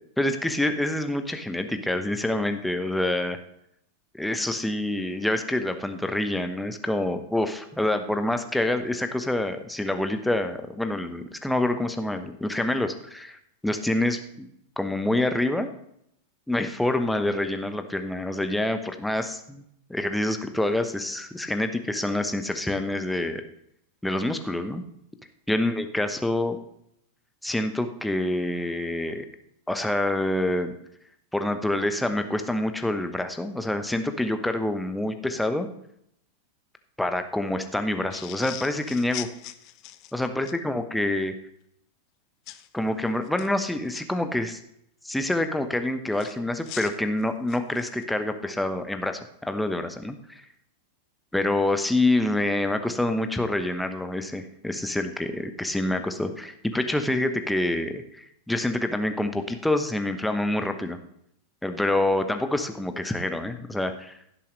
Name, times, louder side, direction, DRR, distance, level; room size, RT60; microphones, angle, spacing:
voice 1, 0.2-3.4 4.1-13.4 13.6-14.5 14.8-15.7 16.5-19.6 19.9-23.4 24.0-24.8 25.5-26.6 27.4-29.3 29.7-30.7 31.3-35.7 37.0-39.3 40.1-41.3 42.7-44.6 45.0-50.4 51.3-61.0 61.6-64.1, left 1 dB, 5° left, 7 dB, 0.9 m, -27 dB
sound 1, 38.1-40.6 42.5-42.7 43.2-44.0 46.2-48.0, left 15 dB, 40° left, 0.6 m, -41 dB
16.0 x 7.0 x 3.2 m, 0.73 s
figure-of-eight pair, 90°, 0 cm